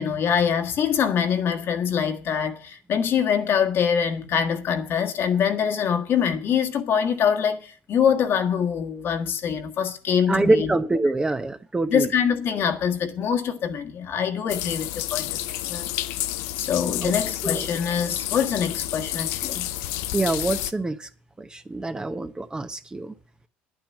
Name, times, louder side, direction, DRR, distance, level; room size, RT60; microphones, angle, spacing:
voice 1, 0.0-10.7 11.9-15.9 16.6-19.7, left 7 dB, 50° left, 1.6 m, -24 dB
voice 2, 10.3-12.1 17.0-17.1 17.4-17.6 20.1-21.1 21.4-23.1, right 2 dB, 15° right, 1.0 m, -25 dB
sound 1, 14.5-20.7, left 14 dB, 75° left, 0.7 m, -30 dB
10.0 x 9.1 x 7.3 m
supercardioid pair, 85°, 5 cm